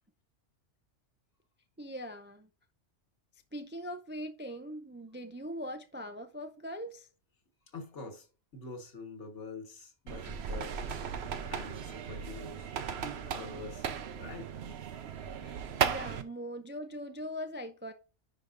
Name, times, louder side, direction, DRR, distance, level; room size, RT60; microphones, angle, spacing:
voice 1, 1.8-2.5 3.5-7.1 15.4-17.9, equal, 15° right, 0.4 m, -41 dB
voice 2, 7.7-10.8 11.5-13.9 14.2-14.8, left 3 dB, 75° left, 1.8 m, -46 dB
sound 1, 10.1-16.2, right 7 dB, 65° right, 1.0 m, -36 dB
10.0 x 5.1 x 2.5 m
omnidirectional pair, 1.2 m